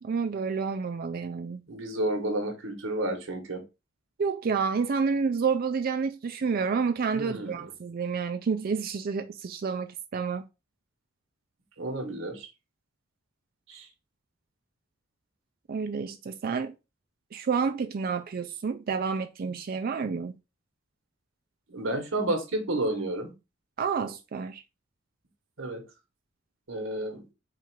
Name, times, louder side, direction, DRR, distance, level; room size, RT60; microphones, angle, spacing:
voice 1, 0.0-1.6 4.2-10.4 15.7-16.7 17.3-20.4 23.8-24.6, right 5 dB, 50° right, 0.4 m, -29 dB
voice 2, 1.7-3.6 7.1-7.7 11.8-12.5 13.7-13.9 21.7-23.3 25.6-25.8 26.7-27.2, right 1 dB, 80° right, 1.3 m, -31 dB
4.5 x 2.5 x 4.5 m
head